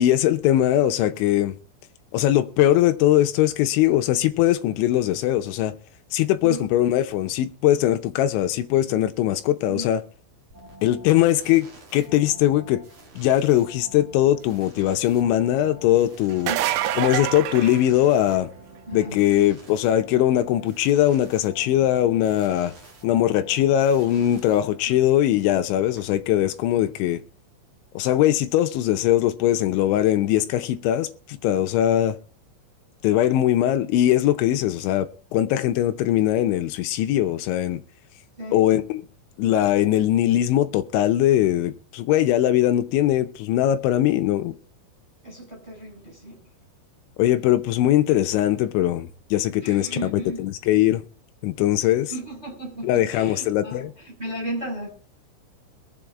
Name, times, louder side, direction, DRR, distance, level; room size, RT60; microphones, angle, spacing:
voice 1, 0.0-1.6 2.1-5.7 6.1-10.0 10.8-11.7 11.9-12.8 13.2-16.5 17.0-18.5 18.9-22.7 23.0-27.2 28.0-31.1 31.4-32.2 33.0-37.8 38.5-39.0 39.4-44.5 47.2-51.0 51.4-52.1 52.8-53.9, left 12 dB, 80° left, 2.8 m, -21 dB
sound 1, 10.5-25.1, right 2 dB, 40° right, 2.0 m, -48 dB
sound 2, 16.3-18.5 24.1-24.2 26.0-26.1, right 13 dB, 80° right, 3.2 m, -26 dB
voice 2, 18.9-19.2 24.9-25.1 38.4-38.6 45.2-46.4 49.6-50.5 52.1-54.9, right 1 dB, 10° right, 5.8 m, -35 dB
22.5 x 7.8 x 3.6 m
omnidirectional pair, 5.9 m